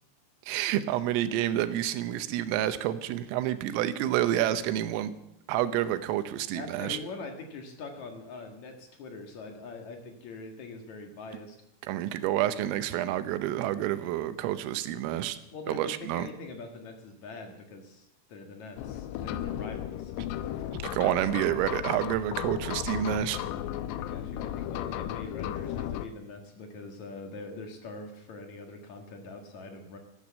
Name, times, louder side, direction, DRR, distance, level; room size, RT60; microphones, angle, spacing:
voice 1, 0.5-5.2 5.5-7.0 11.8-15.4 15.7-16.3 20.9-23.4, right 12 dB, 85° right, 12 dB, 3.5 m, -29 dB
voice 2, 6.5-11.6 15.5-20.1 24.0-30.0, left 3 dB, 60° left, 4 dB, 2.0 m, -43 dB
sound 1, 18.8-26.1, left 11 dB, 90° left, 2.4 m, -35 dB
14.0 x 13.0 x 7.5 m, 0.81 s
omnidirectional pair, 5.8 m